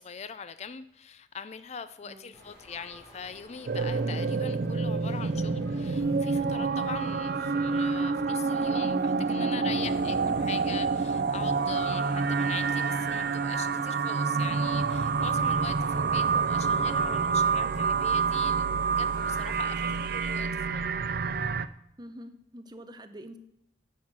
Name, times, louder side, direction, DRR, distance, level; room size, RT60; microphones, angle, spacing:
voice 1, 0.0-18.6 18.9-20.9, left 6 dB, 35° left, 13 dB, 0.4 m, -42 dB
voice 2, 2.0-2.3 22.0-23.4, equal, 25° right, 9 dB, 0.8 m, -46 dB
sound 1, 2.3-20.0, equal, 20° left, 3.3 m, -53 dB
sound 2, 3.7-21.7, right 5 dB, 55° right, 0.5 m, -27 dB
sound 3, 9.8-20.4, right 2 dB, 70° left, 1.6 m, -51 dB
10.0 x 6.4 x 7.3 m, 0.80 s
head